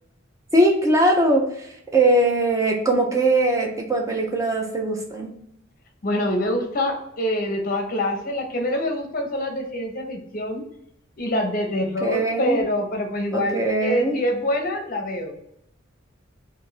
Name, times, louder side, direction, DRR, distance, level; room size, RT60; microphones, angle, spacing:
voice 1, 0.5-5.3 12.0-12.6 13.3-14.2, right 1 dB, 15° right, 0 dB, 0.5 m, -21 dB
voice 2, 6.0-10.7 11.2-15.4, left 1 dB, 45° left, 4 dB, 0.6 m, -25 dB
2.5 x 2.5 x 3.2 m, 0.75 s
head